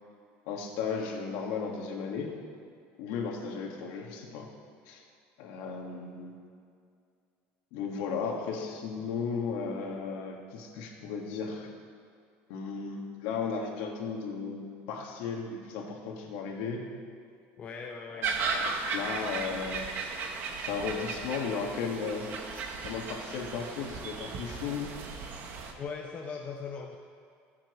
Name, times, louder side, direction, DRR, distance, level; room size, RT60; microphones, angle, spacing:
voice 1, 0.5-2.3 3.0-4.5 4.9-5.0 5.4-6.4 7.7-11.7 12.5-16.8 18.3-19.9 20.6-24.9, left 5 dB, 80° left, 0 dB, 1.9 m, -35 dB
voice 2, 17.6-18.4 25.8-27.0, left 5 dB, 30° left, 2 dB, 0.7 m, -39 dB
sound 1, 18.2-25.7, right 4 dB, 45° right, 1.1 m, -36 dB
20.0 x 7.3 x 3.2 m, 2.3 s
cardioid pair, 155°, 5 cm